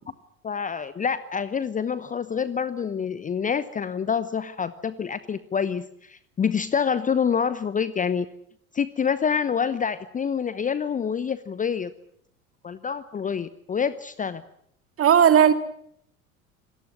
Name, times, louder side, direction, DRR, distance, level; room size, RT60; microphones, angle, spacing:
voice 1, 0.4-8.3 8.7-11.9 12.6-14.4, left 7 dB, 20° left, 0.9 m, -27 dB
voice 2, 15.0-15.5, right 8 dB, 30° right, 2.5 m, -15 dB
26.5 x 18.5 x 7.8 m
figure-of-eight pair, 75°, 43 cm